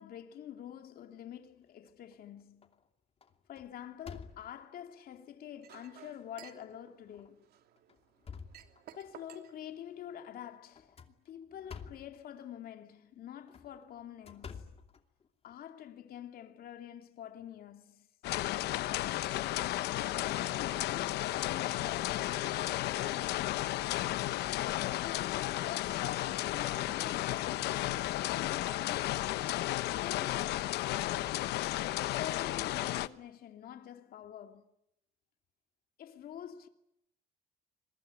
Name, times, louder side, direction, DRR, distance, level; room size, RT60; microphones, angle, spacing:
voice 1, 0.0-2.7 3.5-7.5 8.9-14.7 15.4-18.1 20.1-23.9 24.6-27.9 28.3-31.5 32.0-34.7 36.0-36.7, left 10 dB, 60° left, 2.6 m, -47 dB
sound 1, 1.6-2.2 2.6-2.9 3.2-4.8 5.5-5.6 6.0-6.1 7.1-7.3 7.8-9.2 10.7-12.2 13.3-15.6, left 6 dB, 35° left, 2.7 m, -50 dB
Chink clink, 5.6-10.6, right 11 dB, 70° right, 3.0 m, -56 dB
sound 2, 18.2-33.1, left 15 dB, 80° left, 1.1 m, -33 dB
26.5 x 23.0 x 9.0 m
cardioid pair, 110°, 17 cm